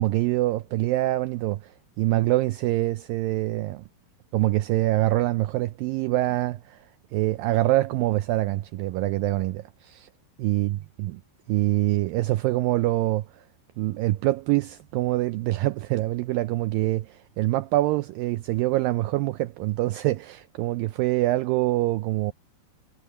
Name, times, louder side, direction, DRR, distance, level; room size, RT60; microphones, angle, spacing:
voice 1, 0.0-1.7 2.0-3.8 4.3-6.8 7.1-10.1 10.4-11.2 11.5-13.3 13.8-22.3, right 17 dB, 90° right, 2.0 m, -25 dB
omnidirectional pair, 4.6 m